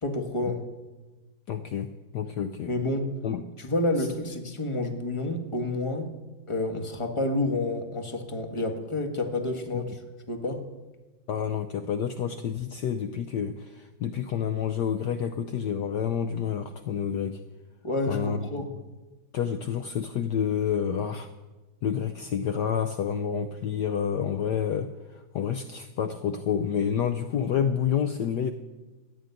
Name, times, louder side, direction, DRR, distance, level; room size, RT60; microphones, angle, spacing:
voice 1, 0.0-0.6 2.6-3.1 3.6-6.1 6.5-10.0 10.3-10.6 17.8-18.7, left 2 dB, 15° left, 4 dB, 1.5 m, -29 dB
voice 2, 1.5-2.7 3.2-3.4 9.7-9.8 11.3-17.4 18.1-18.4 19.3-21.3 21.8-28.5, left 8 dB, 65° left, 9 dB, 1.2 m, -29 dB
14.5 x 9.4 x 9.6 m, 1.2 s
omnidirectional pair, 2.1 m